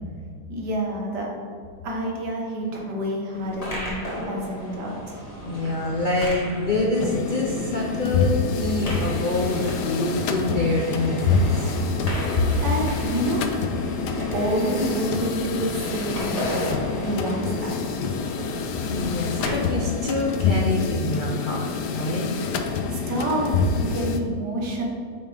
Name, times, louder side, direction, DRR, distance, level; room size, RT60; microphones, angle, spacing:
voice 1, 0.5-1.3 1.8-5.2 12.3-13.5 13.9-16.7 17.0-17.8 22.9-23.5 23.7-24.8, right 1 dB, 90° right, -1 dB, 2.0 m, -28 dB
sound 1, 3.3-19.5, equal, 25° left, 1.7 m, -35 dB
voice 2, 5.4-11.7 12.4-12.5 18.9-21.7 21.9-22.3, left 2 dB, 55° left, -2 dB, 0.5 m, -25 dB
sound 2, 6.9-24.2, left 4 dB, 85° left, 1.3 m, -27 dB
8.8 x 5.8 x 3.5 m, 2.2 s
omnidirectional pair, 1.7 m